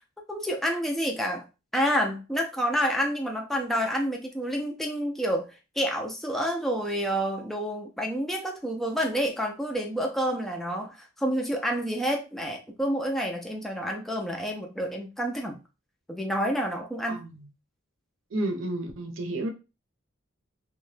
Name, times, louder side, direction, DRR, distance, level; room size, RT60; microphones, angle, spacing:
voice 1, 0.3-1.4 1.7-15.6 16.1-17.2, equal, ahead, 0.4 m, -29 dB
voice 2, 17.1-17.4 18.3-19.5, right 1 dB, 80° right, 0.7 m, -31 dB
2.8 x 2.2 x 3.1 m
head